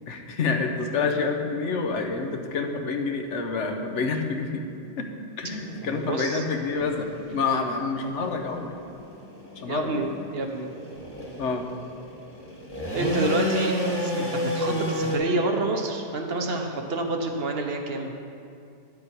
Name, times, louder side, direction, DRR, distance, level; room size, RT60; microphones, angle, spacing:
voice 1, 0.1-4.6 5.0-5.1 5.4-8.7 9.6-10.1 11.4-11.6, left 4 dB, 75° left, 4 dB, 1.1 m, -28 dB
sound 1, 5.4-15.2, left 1 dB, 20° left, 1.4 m, -32 dB
voice 2, 5.8-6.4 9.6-10.7 12.9-18.1, right 2 dB, 60° right, 3 dB, 1.0 m, -28 dB
9.9 x 7.6 x 4.5 m, 2.5 s
omnidirectional pair, 1.2 m